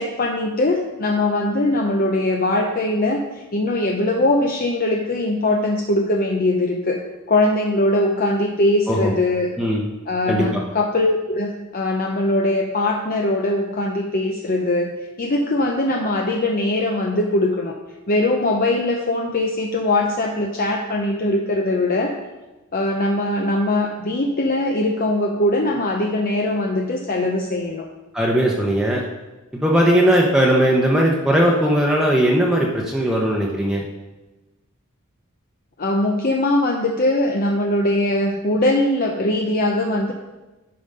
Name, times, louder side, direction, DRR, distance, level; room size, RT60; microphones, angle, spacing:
voice 1, 0.0-7.0 7.3-9.5 10.1-17.8 18.1-22.1 22.7-27.9 35.8-40.1, left 1 dB, 45° left, 2 dB, 0.7 m, -21 dB
voice 2, 10.3-10.6 28.1-29.0 29.6-33.8, equal, 5° right, -3 dB, 0.9 m, -18 dB
11.0 x 5.3 x 5.4 m, 1.1 s
head